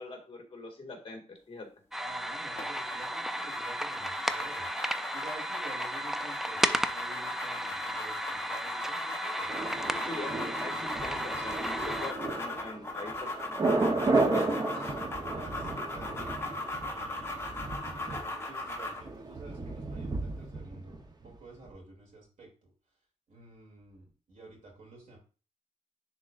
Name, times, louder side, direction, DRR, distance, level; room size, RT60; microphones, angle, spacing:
voice 1, 0.0-1.7 10.0-13.3 13.8-14.9, left 2 dB, 45° left, 1 dB, 1.9 m, -42 dB
sound 1, 1.9-12.1, equal, 5° right, 0.3 m, -34 dB
voice 2, 2.0-4.7 5.1-9.5 15.3-15.7 15.9-17.4 17.8-22.7 23.3-25.2, right 2 dB, 80° right, -2 dB, 2.8 m, -50 dB
sound 2, 2.6-19.1, left 2 dB, 20° left, 1.1 m, -39 dB
Thunder, 9.5-21.4 21.6-21.7, right 3 dB, 30° right, 0.9 m, -33 dB
10.0 x 3.8 x 2.5 m, 0.36 s
wide cardioid pair, 130°, 13 cm